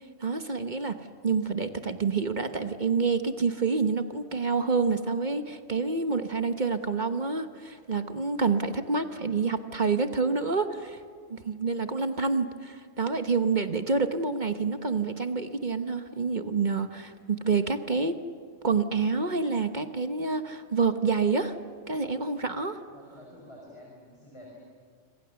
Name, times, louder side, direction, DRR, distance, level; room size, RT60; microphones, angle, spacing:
voice 1, 0.2-1.0 1.2-11.0 11.3-18.2 18.6-21.5 21.9-22.8, right 4 dB, 40° right, 8 dB, 1.2 m, -28 dB
voice 2, 22.9-24.6, left 1 dB, 25° left, -2 dB, 5.2 m, -49 dB
26.5 x 25.5 x 7.1 m, 2.1 s
omnidirectional pair, 1.3 m